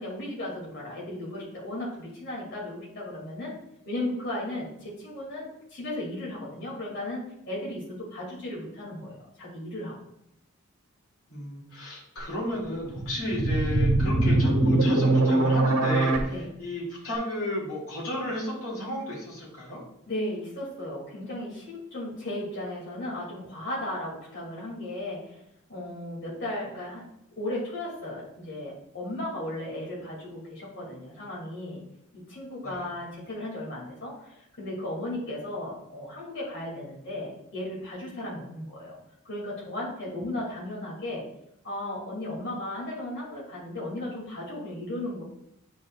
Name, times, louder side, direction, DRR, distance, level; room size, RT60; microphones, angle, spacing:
voice 1, 0.0-3.6 3.8-10.0 16.3-16.5 20.1-25.4 25.7-31.8 32.1-39.0 39.2-41.3 41.6-45.2, left 1 dB, 55° left, -4 dB, 2.3 m, -35 dB
voice 2, 11.3-19.8 32.6-32.9, left 1 dB, 80° left, -4 dB, 2.3 m, -33 dB
sound 1, 12.9-16.2, right 2 dB, 85° right, 1.4 m, -22 dB
8.5 x 5.0 x 2.3 m, 0.79 s
head